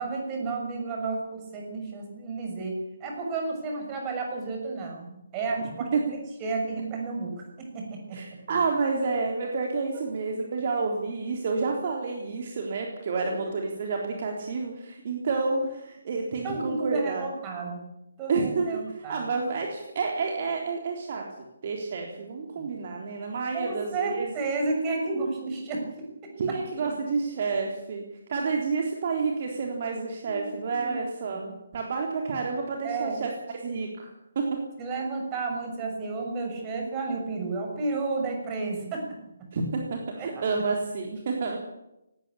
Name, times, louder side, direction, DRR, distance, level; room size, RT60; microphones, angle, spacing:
voice 1, 0.0-2.7 3.0-5.9 6.4-7.4 7.7-8.2 13.2-13.3 16.4-17.8 18.2-19.3 22.5-22.7 23.5-26.9 30.2-30.5 30.8-31.0 31.3-31.5 32.8-33.2 34.8-39.0 40.2-40.4, right 3 dB, 20° right, 1 dB, 6.6 m, -32 dB
voice 2, 8.1-17.2 18.3-18.8 19.1-21.2 21.6-24.3 26.4-33.3 33.6-34.6 39.5-41.6, right 4 dB, 40° right, 1 dB, 3.7 m, -29 dB
19.0 x 18.0 x 8.7 m, 0.88 s
figure-of-eight pair, 140°, 0 cm